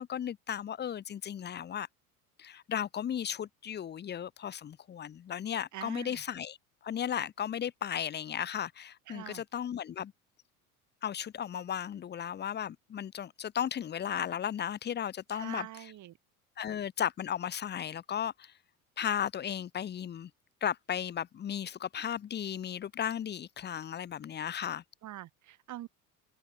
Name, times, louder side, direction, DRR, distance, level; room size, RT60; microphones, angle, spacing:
voice 1, 0.0-1.9 2.4-6.6 6.8-10.1 11.0-15.9 16.6-18.5 19.0-20.3 20.6-24.8, left 9 dB, 25° left, 0.7 m, -35 dB
voice 2, 5.7-6.2 9.1-9.4 15.3-16.2 25.0-25.9, right 13 dB, 40° right, 1.6 m, -44 dB
open air
hypercardioid pair, 75°, 44 cm